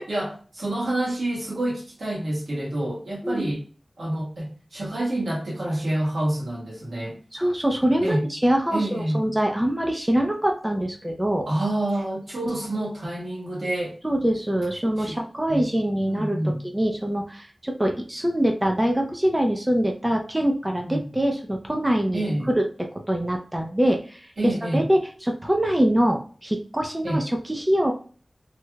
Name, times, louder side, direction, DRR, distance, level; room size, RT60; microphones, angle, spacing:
voice 1, 0.0-3.6 4.0-7.2 8.0-8.2 8.7-9.3 11.5-14.0 15.0-15.1 15.5-15.7 16.1-16.7 20.8-21.0 22.1-22.5 24.4-24.9 27.0-27.2, right 1 dB, 90° right, 1.4 m, -28 dB
voice 2, 7.3-11.5 14.0-16.4 16.7-22.2 22.6-22.7 22.9-27.9, right 1 dB, 15° right, 0.6 m, -24 dB
3.2 x 3.1 x 2.3 m
wide cardioid pair, 65°, 0 cm